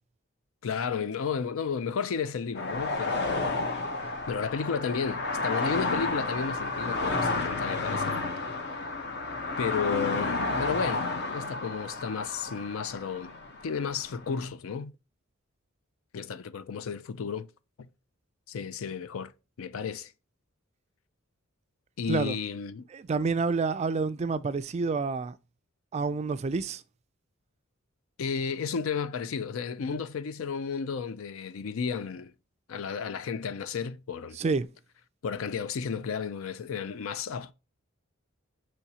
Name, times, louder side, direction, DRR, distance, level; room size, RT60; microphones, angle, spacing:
voice 1, 0.6-3.6 4.3-8.2 8.7-8.8 9.6-13.3 13.6-14.9 16.1-17.5 17.8-17.9 18.5-19.3 19.6-20.1 22.0-22.9 28.2-32.3 32.7-34.4 35.2-37.5, left 6 dB, 75° left, 0.4 m, -33 dB
sound 1, 2.6-14.5, left 3 dB, 50° left, 0.9 m, -31 dB
voice 2, 22.9-25.4 25.9-26.8 34.3-34.7, right 4 dB, 30° right, 0.3 m, -28 dB
6.0 x 3.1 x 2.8 m
head